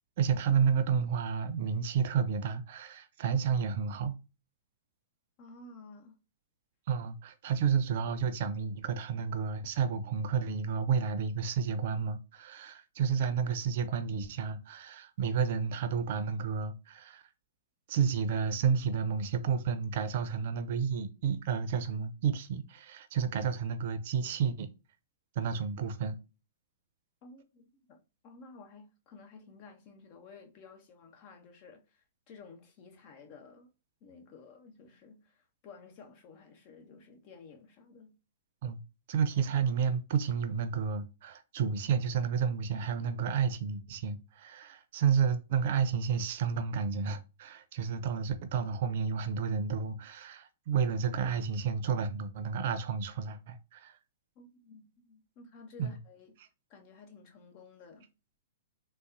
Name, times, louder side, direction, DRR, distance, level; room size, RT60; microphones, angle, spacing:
voice 1, 0.2-4.2 6.9-17.2 17.9-24.7 25.4-26.2 38.6-38.8 39.1-54.0 55.8-56.0, right 6 dB, 55° right, 0.5 m, -31 dB
voice 2, 5.4-6.2 6.9-7.0 27.2-28.0 28.2-33.7 34.0-38.2 54.4-56.4 56.7-58.1, left 4 dB, 45° left, 1.0 m, -53 dB
3.9 x 2.1 x 2.6 m
hypercardioid pair, 120°, 0 cm